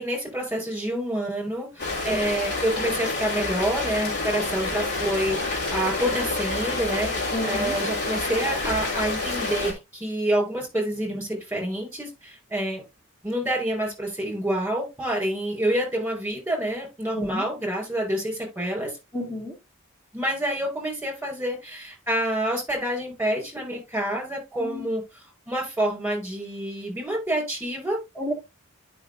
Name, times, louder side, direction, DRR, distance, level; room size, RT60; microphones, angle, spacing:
voice 1, 0.0-12.8 13.2-18.9 20.1-28.0, right 1 dB, 10° right, 0 dB, 5.1 m, -28 dB
Rain, 1.8-9.7, left 3 dB, 55° left, 3.1 m, -28 dB
voice 2, 7.3-7.7 17.2-17.4 19.1-19.5 24.5-24.9 28.2-28.3, left 1 dB, 10° left, -2 dB, 1.8 m, -30 dB
11.0 x 5.8 x 2.7 m, 0.23 s
head